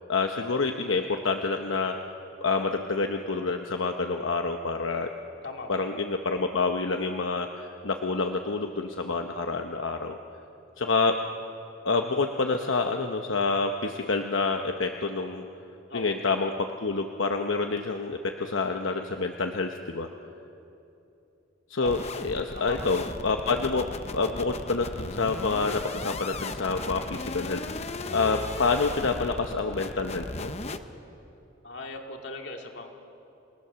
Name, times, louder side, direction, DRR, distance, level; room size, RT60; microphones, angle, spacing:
voice 1, 0.1-1.9 2.4-5.1 5.7-10.2 10.8-11.2 11.8-15.5 15.9-20.1 21.7-22.0 22.2-23.9 24.1-30.5, left 4 dB, 85° left, 4 dB, 0.9 m, -28 dB
sound 1, 21.8-30.8, left 2 dB, 35° left, 0.8 m, -36 dB
voice 2, 22.5-23.0 31.6-32.9, left 3 dB, 65° left, 2 dB, 2.4 m, -39 dB
29.0 x 18.5 x 6.9 m, 2.8 s
head